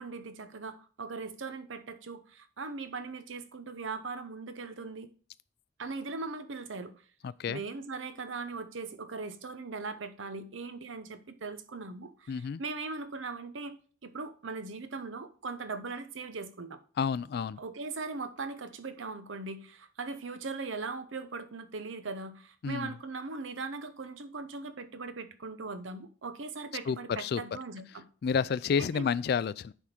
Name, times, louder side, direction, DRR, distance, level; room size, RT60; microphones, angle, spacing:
voice 1, 0.0-5.1 5.8-6.9 7.5-13.8 14.0-16.8 17.6-28.0 28.9-29.1, right 4 dB, 85° right, 0.8 m, -39 dB
voice 2, 7.2-7.6 12.3-12.6 17.0-17.6 22.6-22.9 26.9-27.4 28.2-29.7, left 6 dB, 55° left, 0.3 m, -30 dB
9.8 x 3.7 x 4.3 m
head